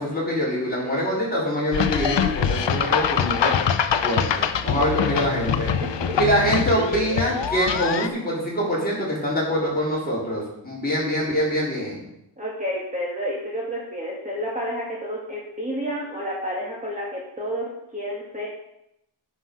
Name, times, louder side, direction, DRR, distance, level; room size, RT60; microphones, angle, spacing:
voice 1, 0.0-3.6 4.0-5.7 6.2-12.0, equal, 20° left, -6 dB, 4.0 m, -24 dB
sound 1, 1.7-8.1, left 7 dB, 70° left, 0.7 m, -24 dB
voice 2, 4.8-5.5 5.8-6.3 12.4-18.5, equal, 15° right, -5 dB, 2.2 m, -31 dB
9.8 x 5.7 x 6.1 m, 0.82 s
wide cardioid pair, 125°, 45 cm